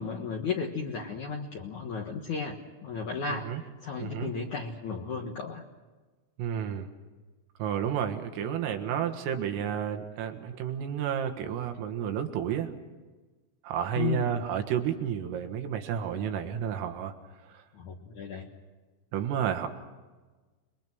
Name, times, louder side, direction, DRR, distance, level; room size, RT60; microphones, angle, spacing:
voice 1, 0.0-5.6 13.9-14.4 17.7-18.5, left 5 dB, 80° left, 1 dB, 1.7 m, -34 dB
voice 2, 4.0-4.3 6.4-6.9 7.6-12.7 13.6-17.1 17.5-17.6 19.1-19.7, right 9 dB, 80° right, 5 dB, 4.2 m, -31 dB
30.0 x 22.0 x 6.2 m, 1.3 s
omnidirectional pair, 6.0 m